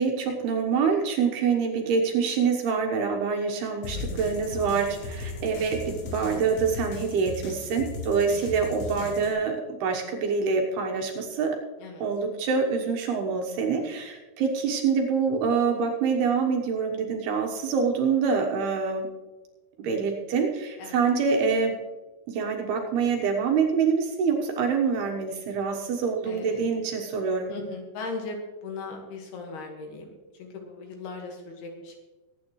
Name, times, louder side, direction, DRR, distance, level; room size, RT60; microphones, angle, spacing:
voice 1, 0.0-11.6 12.0-19.1 19.8-21.8 22.3-27.5, right 5 dB, 70° right, 2 dB, 2.8 m, -26 dB
sound 1, 3.8-9.3, left 3 dB, 80° left, 4.4 m, -37 dB
voice 2, 26.3-26.7 27.5-30.1 30.4-32.0, left 3 dB, 65° left, 2 dB, 3.3 m, -38 dB
23.0 x 9.4 x 3.1 m, 1.2 s
omnidirectional pair, 5.4 m